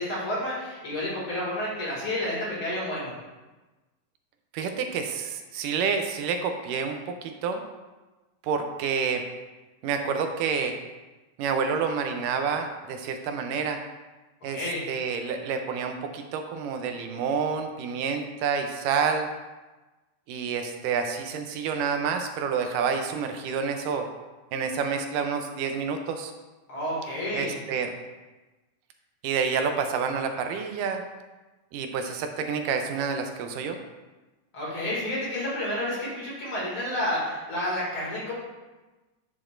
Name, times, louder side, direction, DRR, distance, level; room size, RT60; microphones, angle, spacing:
voice 1, 0.0-3.1 14.5-14.8 26.7-27.6 34.5-38.3, left 1 dB, 45° left, -6 dB, 2.9 m, -30 dB
voice 2, 4.5-7.6 8.4-9.2 9.8-10.7 11.4-13.8 14.4-19.3 20.3-24.1 24.5-26.3 27.3-27.9 29.2-31.0 31.7-33.8, right 6 dB, 85° right, 5 dB, 2.3 m, -28 dB
10.5 x 6.3 x 2.5 m, 1.2 s
omnidirectional pair, 3.7 m